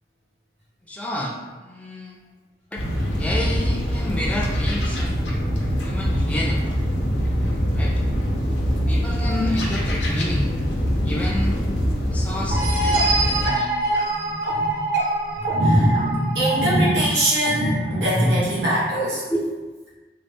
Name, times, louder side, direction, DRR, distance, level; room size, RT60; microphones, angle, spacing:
voice 1, 0.9-1.4 1.6-2.2 2.7-2.8 3.2-5.1 5.8-6.7 7.7-7.9 8.9-10.5 11.0-11.6 12.1-13.8 19.3-19.5, left 1 dB, 10° left, -3 dB, 0.3 m, -29 dB
sound 1, 2.8-13.4, equal, 85° left, 0.7 m, -23 dB
sound 2, 12.5-18.0, right 2 dB, 55° right, 0.7 m, -24 dB
voice 2, 14.2-14.8 15.2-19.2, equal, 75° right, -8 dB, 1.2 m, -21 dB
3.8 x 2.1 x 3.5 m, 1.3 s
head